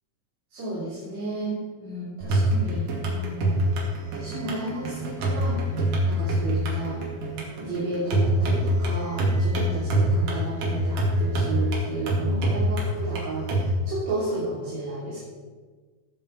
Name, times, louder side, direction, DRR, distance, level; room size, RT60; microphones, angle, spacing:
voice 1, 0.5-3.7 4.1-5.7 6.0-7.0 7.6-13.5 13.9-15.2, right 2 dB, 55° right, -7 dB, 4.0 m, -32 dB
sound 1, 2.2-13.7, right 1 dB, 75° right, 4.0 m, -25 dB
17.5 x 8.3 x 4.8 m, 1.4 s
omnidirectional pair, 3.9 m